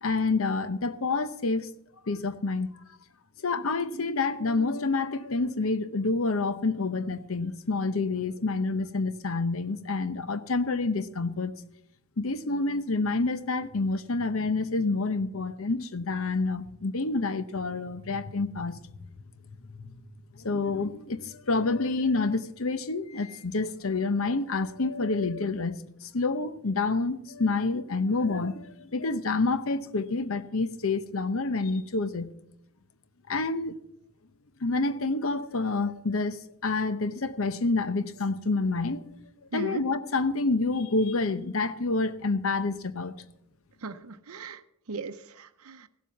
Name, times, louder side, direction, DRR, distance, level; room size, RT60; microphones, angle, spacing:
voice 1, 0.0-1.7 2.1-2.7 3.4-11.5 12.2-18.8 19.7-19.9 20.4-32.3 33.3-33.8 34.6-39.0 39.5-43.2, left 3 dB, 65° left, 0.9 m, -28 dB
voice 2, 39.5-39.8 43.8-44.6 44.9-45.9, right 4 dB, 80° right, 0.7 m, -38 dB
15.5 x 7.5 x 7.1 m
head